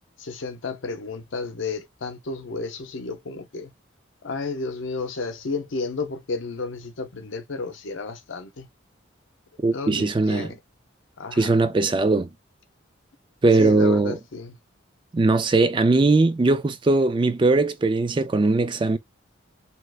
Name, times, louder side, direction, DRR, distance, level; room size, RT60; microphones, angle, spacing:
voice 1, 0.2-3.7 4.2-8.7 9.7-10.6 11.2-11.6 13.5-14.5, left 3 dB, 75° left, 0.6 m, -32 dB
voice 2, 9.6-10.5 11.4-12.3 13.4-14.2 15.1-19.0, right 3 dB, 25° right, 0.3 m, -20 dB
2.9 x 2.4 x 3.3 m
head